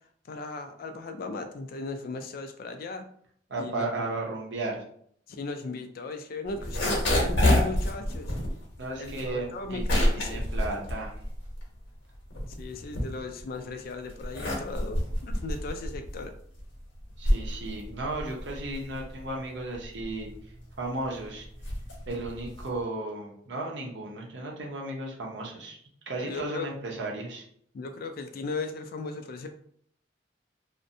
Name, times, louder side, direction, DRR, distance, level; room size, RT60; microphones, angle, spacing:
voice 1, 0.2-3.1 3.6-3.9 5.3-8.3 9.0-10.4 12.5-16.3 26.2-26.7 27.7-29.5, left 3 dB, 50° left, 6 dB, 0.3 m, -37 dB
voice 2, 3.5-4.8 8.8-11.2 17.2-20.3 20.8-21.5 22.1-25.8 26.1-27.4, right 2 dB, 65° right, -1 dB, 0.7 m, -34 dB
sound 1, 6.5-11.8 12.1-13.6 14.1-22.8, left 1 dB, 80° left, 0.8 m, -28 dB
2.5 x 2.1 x 2.6 m, 0.63 s
head